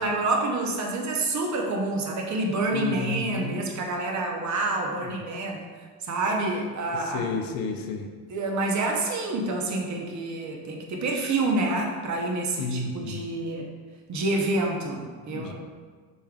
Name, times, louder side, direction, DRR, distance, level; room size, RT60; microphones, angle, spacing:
voice 1, 0.0-5.6 6.1-7.2 8.3-13.7 14.1-15.5, right 2 dB, 45° right, 1 dB, 0.8 m, -28 dB
voice 2, 2.7-3.6 5.0-5.2 6.9-8.1 12.6-13.3 15.3-15.5, left 3 dB, 55° left, 4 dB, 0.6 m, -32 dB
5.4 x 3.2 x 2.3 m, 1.5 s
supercardioid pair, 90°, 41 cm